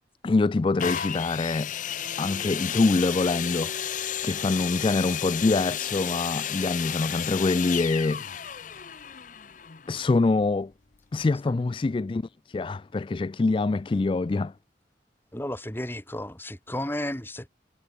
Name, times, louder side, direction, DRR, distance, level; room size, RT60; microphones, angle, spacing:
voice 1, 0.2-1.7 2.2-3.7 4.2-8.3 9.9-10.7 11.1-14.5, left 3 dB, 30° left, 0.3 m, -25 dB
sound 1, 0.8-10.5 11.2-11.3, left 9 dB, 45° left, 0.7 m, -33 dB
voice 2, 15.3-17.5, left 1 dB, 15° left, 2.9 m, -33 dB
head